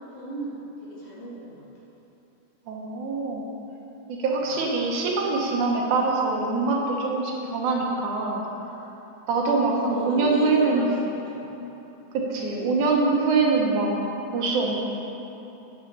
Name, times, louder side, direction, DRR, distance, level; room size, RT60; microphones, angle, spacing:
voice 1, 0.0-1.6 4.4-4.6 9.9-11.5, right 1 dB, 80° left, -7 dB, 3.5 m, -36 dB
voice 2, 2.7-3.4 4.1-8.4 9.3-10.9 12.1-13.9 14.3-14.7, right 3 dB, 80° right, -1 dB, 2.5 m, -24 dB
9.0 x 5.7 x 6.6 m, 2.9 s
omnidirectional pair, 3.5 m